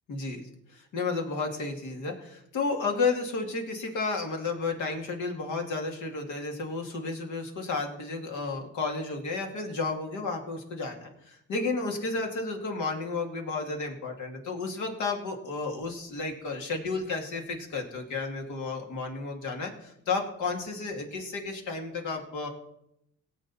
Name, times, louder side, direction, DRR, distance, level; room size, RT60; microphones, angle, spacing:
voice 1, 0.1-22.5, left 3 dB, 80° left, 3 dB, 2.4 m, -32 dB
18.0 x 8.1 x 4.2 m, 0.80 s
cardioid pair, 90°, 30 cm